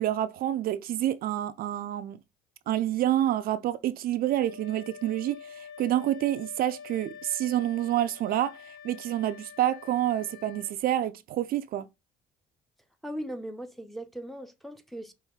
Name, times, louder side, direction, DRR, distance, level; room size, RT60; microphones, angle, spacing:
voice 1, 0.0-2.2 2.7-11.9, right 12 dB, 60° right, 0.4 m, -28 dB
Wind instrument woodwind instrument, 4.2-10.8, left 7 dB, 70° left, 0.9 m, -46 dB
voice 2, 13.0-15.1, equal, ahead, 0.6 m, -38 dB
5.5 x 2.6 x 3.6 m
cardioid pair, 110°, 17 cm